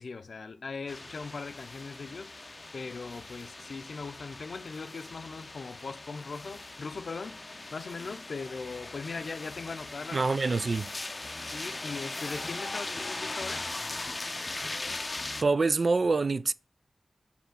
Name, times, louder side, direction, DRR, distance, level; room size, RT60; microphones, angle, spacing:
voice 1, 0.0-10.2 10.6-10.8 11.4-13.6, left 4 dB, 85° left, 0.6 m, -40 dB
sound 1, 0.9-15.4, left 2 dB, 40° left, 0.5 m, -39 dB
voice 2, 10.1-10.9 15.4-16.5, right 3 dB, 60° right, 0.3 m, -25 dB
5.8 x 4.2 x 6.0 m
wide cardioid pair, 70°, 0 cm